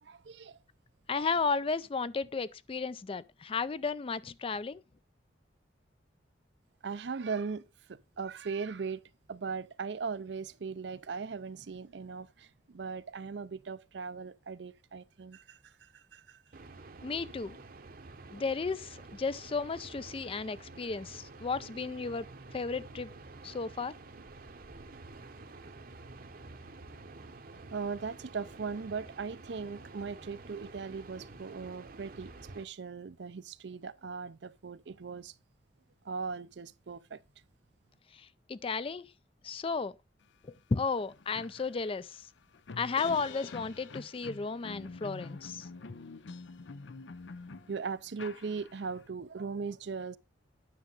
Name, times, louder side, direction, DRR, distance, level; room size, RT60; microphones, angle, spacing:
voice 1, 0.0-0.6 6.8-7.6 7.9-9.0 9.3-16.4 27.7-35.3 36.0-37.2 47.7-50.2, right 5 dB, 70° right, 0.5 m, -39 dB
voice 2, 1.1-4.8 17.0-17.6 18.3-22.3 22.5-23.1 23.4-23.9 38.1-39.1 39.4-39.9 40.4-42.3 42.8-45.7, left 4 dB, 30° left, 0.4 m, -34 dB
sound 1, 16.5-32.6, right 3 dB, 50° right, 0.9 m, -49 dB
sound 2, 40.6-40.7 41.0-49.0, left 4 dB, 80° left, 0.6 m, -46 dB
9.8 x 6.4 x 3.9 m
head